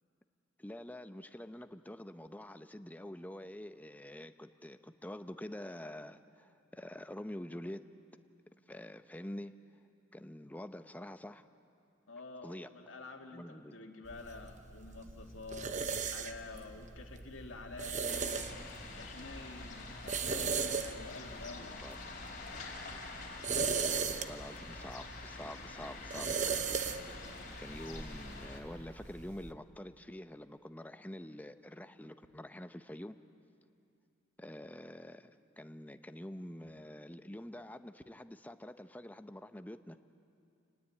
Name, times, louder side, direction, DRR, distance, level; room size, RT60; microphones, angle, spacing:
voice 1, 0.6-7.8 8.7-9.5 10.1-11.5 12.4-12.7 13.3-13.8 21.8-22.0 24.1-26.5 27.3-33.2 34.4-40.0, left 1 dB, 10° left, 9 dB, 0.7 m, -46 dB
voice 2, 12.1-18.6 18.9-21.8, left 3 dB, 75° left, 1 dB, 2.2 m, -48 dB
sound 1, 14.1-29.5, right 5 dB, 40° right, 0.9 m, -39 dB
sound 2, 18.1-28.6, left 3 dB, 45° left, 3.6 m, -47 dB
29.0 x 20.0 x 8.5 m, 2.5 s
head